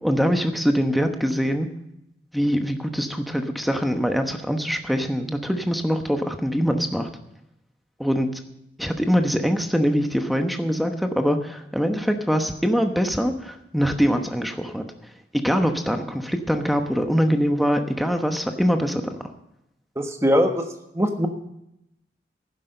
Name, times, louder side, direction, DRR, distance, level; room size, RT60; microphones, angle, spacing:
voice 1, 0.0-1.7 2.3-7.1 8.0-8.3 8.8-14.8 15.3-19.2, equal, ahead, 6 dB, 1.0 m, -23 dB
voice 2, 19.9-20.6 20.9-21.3, equal, 15° right, 5 dB, 1.3 m, -21 dB
11.5 x 9.8 x 6.5 m, 0.81 s
head